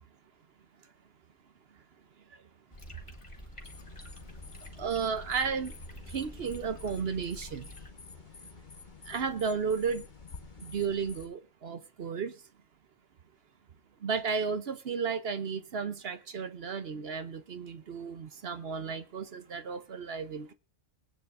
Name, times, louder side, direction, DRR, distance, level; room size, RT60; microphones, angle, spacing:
sound 1, 2.7-7.9, equal, 25° left, 2.1 m, -48 dB
sound 2, 3.6-11.3, left 5 dB, 40° left, 1.3 m, -50 dB
voice 1, 4.8-5.7 6.1-7.7 9.1-10.0 10.6-12.3 14.0-20.5, right 6 dB, 55° right, 1.0 m, -33 dB
21.5 x 9.2 x 2.6 m
omnidirectional pair, 1.3 m